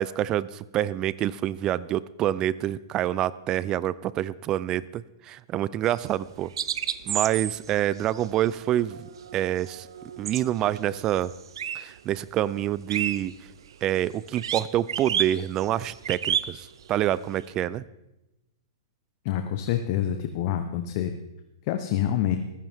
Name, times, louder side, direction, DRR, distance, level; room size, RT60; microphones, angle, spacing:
voice 1, 0.0-6.5 7.1-9.9 10.2-11.3 11.7-13.3 13.8-17.8, right 12 dB, 25° right, 19 dB, 0.4 m, -27 dB
sound 1, 5.9-12.0 12.3-17.5, right 9 dB, 75° right, 0.6 m, -32 dB
voice 2, 19.2-21.1 21.7-22.4, left 10 dB, 45° left, 7 dB, 0.9 m, -26 dB
15.0 x 14.0 x 3.6 m, 0.96 s
hypercardioid pair, 140°, 2 cm